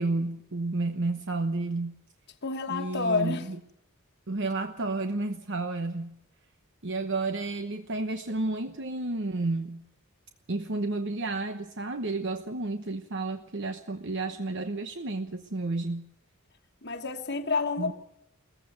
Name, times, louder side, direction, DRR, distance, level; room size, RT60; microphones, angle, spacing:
voice 1, 0.0-1.9 2.7-3.6 4.3-6.2 6.8-9.8 10.5-16.0 17.8-17.9, right 2 dB, 60° right, 1.1 m, -31 dB
voice 2, 2.4-3.5 16.8-17.9, left 4 dB, 50° left, 1.4 m, -29 dB
18.5 x 15.0 x 9.3 m
head